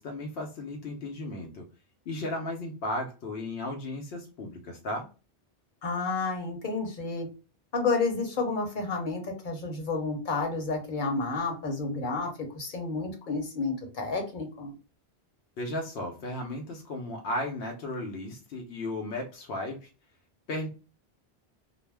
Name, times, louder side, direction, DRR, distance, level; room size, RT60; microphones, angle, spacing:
voice 1, 0.0-1.6 2.1-5.1 15.6-19.9 20.5-20.7, left 1 dB, 85° left, 1 dB, 0.8 m, -35 dB
voice 2, 5.8-7.3 7.7-14.7, left 3 dB, 55° left, 3 dB, 0.9 m, -30 dB
2.4 x 2.0 x 3.2 m, 0.34 s
omnidirectional pair, 1.0 m